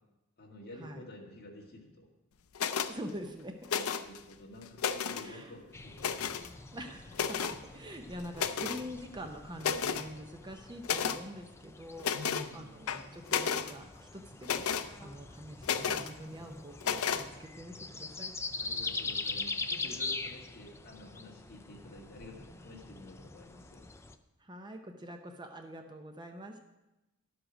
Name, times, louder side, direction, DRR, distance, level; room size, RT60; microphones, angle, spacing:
voice 1, 0.4-2.1 3.7-6.7 12.1-12.8 18.6-23.8, left 1 dB, 45° left, -1 dB, 1.9 m, -50 dB
sound 1, 2.5-2.9 3.6-4.2 4.6-5.3 6.0-6.5 7.1-7.6 8.3-8.8 9.2-9.3 9.6-10.1 10.8-11.2 12.0-12.5 12.9-13.7 14.4-14.9 15.6-16.1 16.8-17.3, left 7 dB, 70° left, 0.5 m, -32 dB
voice 2, 2.9-3.7 5.1-5.5 6.7-14.6 15.0-18.4 24.4-26.6, equal, 20° right, 5 dB, 0.7 m, -45 dB
sound 2, 5.7-24.1, left 3 dB, 10° left, 0.4 m, -43 dB
11.5 x 7.8 x 5.0 m, 0.98 s
head